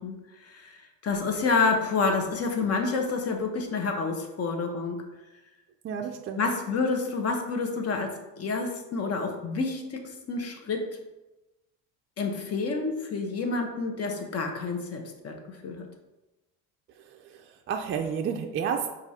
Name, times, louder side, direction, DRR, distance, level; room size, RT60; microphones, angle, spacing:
voice 1, 0.0-5.0 6.4-10.9 12.2-15.9, left 4 dB, 40° left, 3 dB, 0.8 m, -29 dB
voice 2, 5.8-6.5 17.0-18.9, right 7 dB, 35° right, 3 dB, 0.4 m, -31 dB
4.5 x 2.5 x 4.1 m, 1.0 s
supercardioid pair, 95°, 39 cm